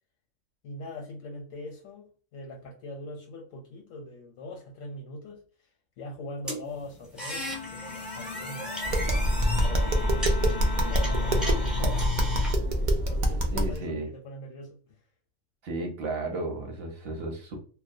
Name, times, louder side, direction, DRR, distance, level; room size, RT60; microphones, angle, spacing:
voice 1, 0.6-5.7 6.0-8.7 9.5-12.1 12.8-15.0, left 1 dB, 80° left, 1.0 m, -42 dB
sound 1, 6.5-12.5, left 2 dB, ahead, 0.4 m, -34 dB
Bowed string instrument, 7.5-13.0, left 5 dB, 65° left, 0.5 m, -41 dB
Tap, 8.8-13.8, equal, 75° right, 0.4 m, -25 dB
voice 2, 13.5-14.1 15.6-17.6, right 2 dB, 55° right, 0.8 m, -33 dB
2.3 x 2.1 x 2.6 m
omnidirectional pair, 1.4 m